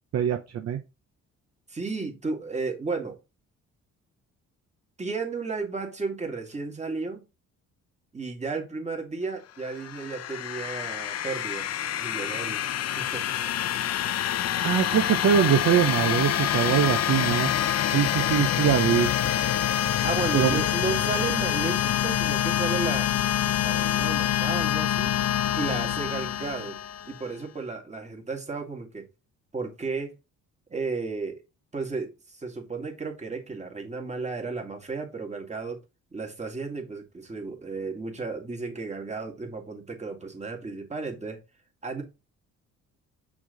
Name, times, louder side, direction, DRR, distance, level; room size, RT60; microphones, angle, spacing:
voice 1, 0.1-0.8 14.6-17.5 17.9-19.1 20.3-20.6, right 9 dB, 60° right, 0.8 m, -23 dB
voice 2, 1.7-3.2 5.0-7.2 8.1-11.7 12.0-12.6 12.9-13.2 20.0-23.1 23.6-25.1 25.5-26.8 27.1-29.1 29.5-30.1 30.7-31.4 31.7-35.8 36.1-41.4 41.8-42.0, right 4 dB, 25° right, 2.3 m, -33 dB
sound 1, 9.6-27.3, left 10 dB, 55° left, 0.7 m, -26 dB
6.1 x 4.1 x 3.9 m
cardioid pair, 90°, 30 cm